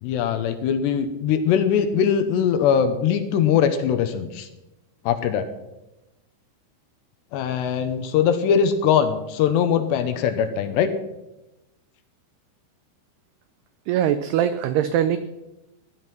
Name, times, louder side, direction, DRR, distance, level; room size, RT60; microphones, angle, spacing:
voice 1, 0.0-4.5 5.1-5.4 7.3-10.9, left 8 dB, 75° left, 9 dB, 2.8 m, -21 dB
voice 2, 13.9-15.2, right 10 dB, 85° right, 11 dB, 2.3 m, -21 dB
15.5 x 11.0 x 6.0 m, 0.96 s
omnidirectional pair, 5.5 m